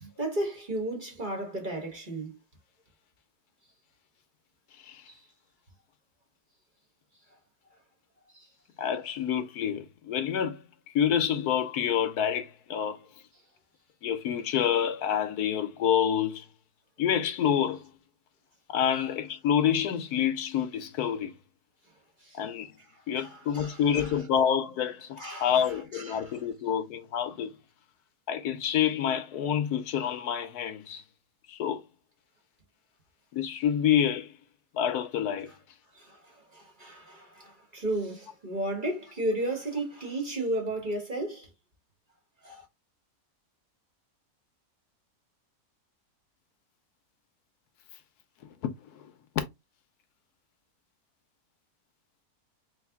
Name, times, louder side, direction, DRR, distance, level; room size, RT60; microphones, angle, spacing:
voice 1, 0.0-2.4 8.3-8.4 22.2-22.4 23.2-24.1 25.2-26.3 35.9-41.5 42.4-42.7, right 1 dB, 35° right, 1.3 m, -34 dB
voice 2, 8.8-10.6 10.9-13.0 14.0-16.5 17.0-17.9 18.7-21.3 22.3-22.7 23.1-27.5 28.3-31.0 31.5-31.8 33.3-34.3 34.7-35.5 48.9-49.0 49.4-49.5, left 9 dB, 80° left, 1.2 m, -27 dB
3.4 x 3.1 x 3.5 m
omnidirectional pair, 1.6 m